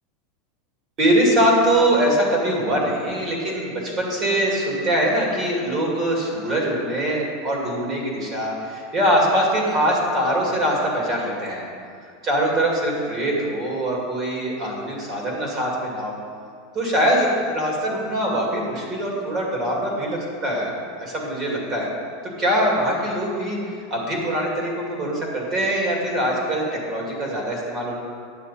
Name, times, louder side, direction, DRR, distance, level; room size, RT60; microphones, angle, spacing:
voice 1, 1.0-11.6 12.2-16.2 16.7-20.7 21.0-21.9 22.4-28.0, right 1 dB, 30° right, -2 dB, 2.4 m, -23 dB
9.6 x 7.9 x 4.2 m, 2.3 s
supercardioid pair, 145°, 0 cm